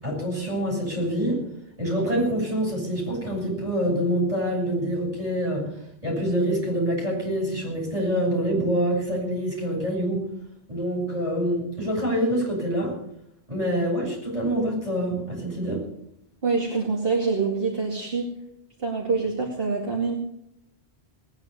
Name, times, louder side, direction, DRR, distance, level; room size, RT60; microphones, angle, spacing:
voice 1, 0.0-1.4 1.8-5.7 6.0-10.2 10.7-12.9 13.5-15.8, equal, 35° right, -2 dB, 7.0 m, -26 dB
voice 2, 16.4-18.3 18.8-20.2, right 4 dB, 55° right, -2 dB, 2.7 m, -25 dB
19.0 x 9.9 x 6.9 m, 0.77 s
omnidirectional pair, 1.2 m